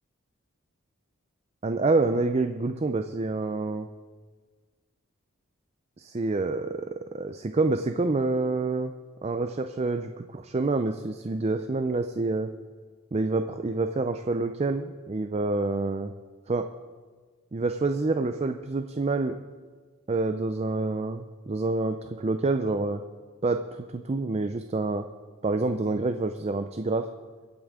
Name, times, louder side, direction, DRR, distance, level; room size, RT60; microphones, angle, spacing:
voice 1, 1.6-3.9 6.0-8.9 9.2-12.5 13.1-16.1 16.5-16.7 17.5-19.3 20.1-23.0 23.4-25.1 25.4-27.1, right 3 dB, 30° right, 7 dB, 0.4 m, -27 dB
24.0 x 8.6 x 3.7 m, 1.5 s
head